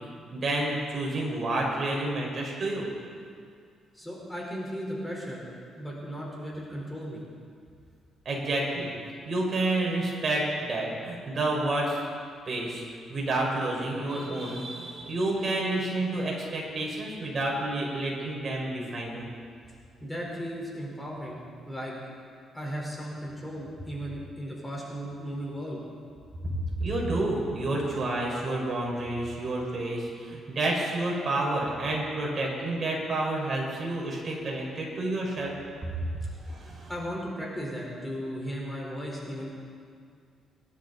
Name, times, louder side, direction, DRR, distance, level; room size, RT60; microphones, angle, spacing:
voice 1, 0.3-2.9 8.2-8.9 9.2-12.0 12.4-12.8 13.1-19.3 26.8-35.5 36.4-36.9, right 2 dB, 45° right, -2 dB, 5.0 m, -29 dB
voice 2, 3.9-7.2 20.0-21.4 21.7-21.9 22.5-25.8 26.9-27.0 36.9-39.5, equal, 10° left, -3 dB, 4.2 m, -36 dB
23.5 x 12.0 x 4.1 m, 2.2 s
cardioid pair, 90°, 0 cm